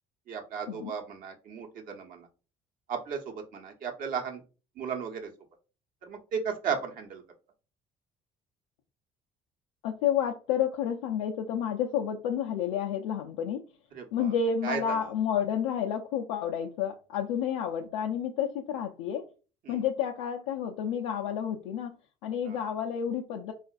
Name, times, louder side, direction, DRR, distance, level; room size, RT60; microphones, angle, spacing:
voice 1, 0.3-2.3 2.9-4.4 4.8-5.3 6.0-7.2 13.9-14.3 14.6-15.1 19.7-19.8 22.5-22.6, right 6 dB, 60° right, 3 dB, 0.9 m, -35 dB
voice 2, 9.8-13.6 14.1-19.2 19.7-22.0 22.2-23.5, left 8 dB, 90° left, 3 dB, 0.4 m, -30 dB
3.7 x 2.4 x 2.4 m, 0.35 s
supercardioid pair, 70°, 16 cm